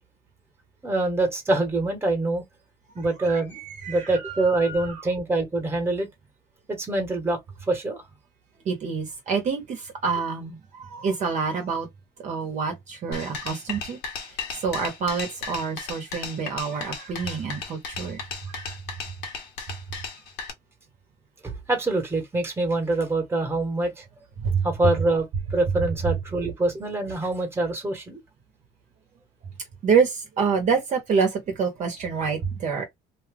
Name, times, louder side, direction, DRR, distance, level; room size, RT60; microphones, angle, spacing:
voice 1, 0.8-2.4 2.9-3.6 3.9-6.1 6.7-7.4 7.7-8.0 21.4-24.0 24.6-28.2, right 2 dB, 15° right, 1.3 m, -25 dB
voice 2, 3.3-4.9 8.6-11.9 12.2-14.0 14.5-18.2 18.5-18.6 24.4-24.6 29.8-32.9, right 5 dB, 40° right, 1.0 m, -27 dB
sound 1, 13.1-20.5, left 5 dB, 65° left, 1.2 m, -35 dB
2.7 x 2.4 x 3.4 m
cardioid pair, 130°, 18 cm